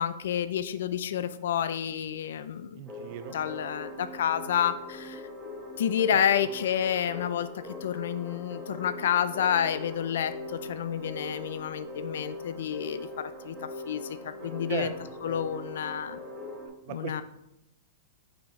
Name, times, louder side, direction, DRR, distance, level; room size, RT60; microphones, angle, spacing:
voice 1, 0.0-2.8 3.3-5.2 5.8-7.5 7.8-13.6 13.9-14.9 15.2-16.2 16.9-17.2, left 9 dB, 70° left, 12 dB, 0.4 m, -29 dB
voice 2, 2.8-3.4 14.4-14.9 15.3-15.4 16.9-17.2, right 11 dB, 35° right, 10 dB, 0.5 m, -37 dB
sound 1, 2.9-16.7, left 1 dB, ahead, 1.1 m, -41 dB
6.1 x 5.1 x 4.2 m, 0.84 s
supercardioid pair, 175°, 0 cm